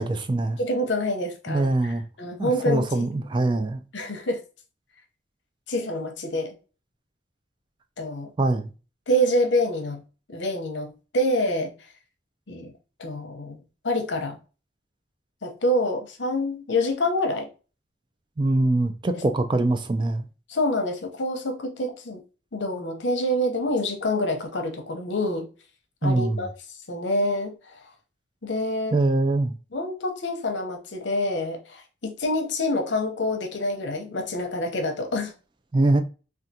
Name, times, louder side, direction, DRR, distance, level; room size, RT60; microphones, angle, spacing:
voice 1, 0.0-0.6 1.5-2.0 2.4-3.8 8.4-8.7 18.4-20.2 26.0-26.5 28.9-29.6 35.7-36.0, right 2 dB, 25° right, 0.3 m, -23 dB
voice 2, 0.6-3.1 3.9-4.4 5.7-6.5 8.0-8.3 9.1-10.0 10.3-11.7 12.5-12.7 13.0-13.6 13.8-14.4 15.4-17.5 19.1-19.2 20.5-22.2 22.5-25.5 26.0-26.5 26.9-27.9 28.4-29.0 29.7-35.3, left 1 dB, 80° left, 0.8 m, -26 dB
3.5 x 2.4 x 2.7 m
head